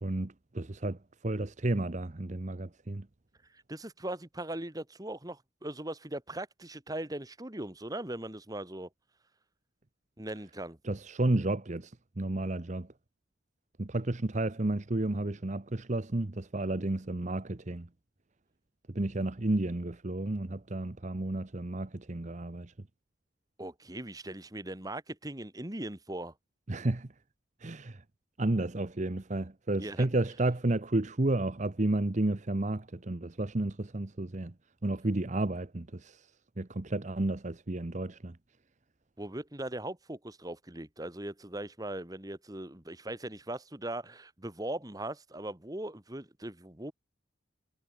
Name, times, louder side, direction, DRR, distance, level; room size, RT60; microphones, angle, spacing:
voice 1, 0.0-3.1 10.8-12.9 13.8-17.9 18.9-22.7 26.7-27.1 27.6-28.0 28.4-34.5 34.8-36.3 36.6-38.4, right 2 dB, 40° right, 0.9 m, -32 dB
voice 2, 3.7-8.9 10.2-10.8 23.6-26.3 29.8-30.1 39.2-46.9, right 1 dB, 20° right, 1.8 m, -39 dB
head